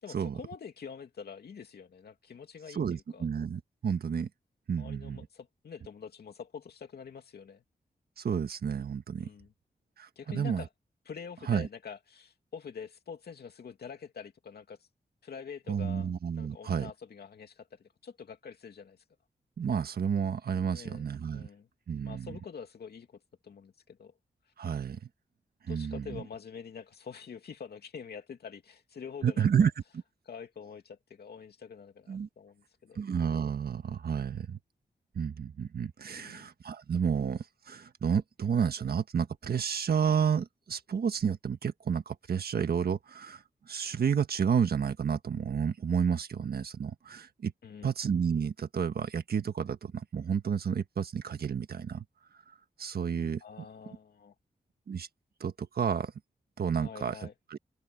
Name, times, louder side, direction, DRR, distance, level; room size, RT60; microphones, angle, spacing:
voice 1, 0.0-3.3 4.8-7.6 9.2-9.5 10.2-10.7 11.1-14.9 15.2-16.1 16.4-19.0 20.7-21.7 22.0-24.1 25.7-29.7 30.2-33.0 36.1-36.5 47.6-47.9 53.4-54.3 56.8-57.3, left 6 dB, 85° left, 2.6 m, -46 dB
voice 2, 2.7-4.3 4.7-5.2 8.2-9.3 10.0-10.6 11.5-11.7 15.7-16.9 19.6-21.5 21.9-22.3 24.6-25.0 25.7-26.2 29.2-29.7 32.1-32.3 32.9-34.6 35.1-47.5 47.8-52.0 52.8-53.4 54.9-55.1 55.4-56.1 56.6-57.2 57.5-57.6, right 7 dB, 75° right, 1.5 m, -31 dB
wide cardioid pair, 95°, 16 cm